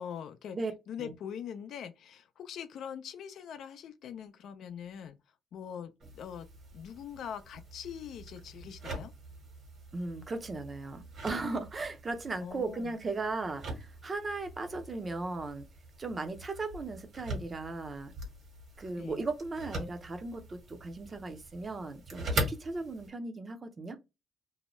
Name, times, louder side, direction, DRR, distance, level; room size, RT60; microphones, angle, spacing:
voice 1, 0.0-0.6 0.9-5.2 5.5-6.5 6.7-9.1 12.4-12.9 18.9-19.2, left 8 dB, 70° left, 0.4 m, -43 dB
sound 1, 6.0-23.1, right 1 dB, 60° right, 1.4 m, -42 dB
voice 2, 9.9-15.7 16.0-18.1 18.8-24.0, right 3 dB, 35° right, 0.6 m, -37 dB
2.7 x 2.2 x 3.0 m
cardioid pair, 90°, 0 cm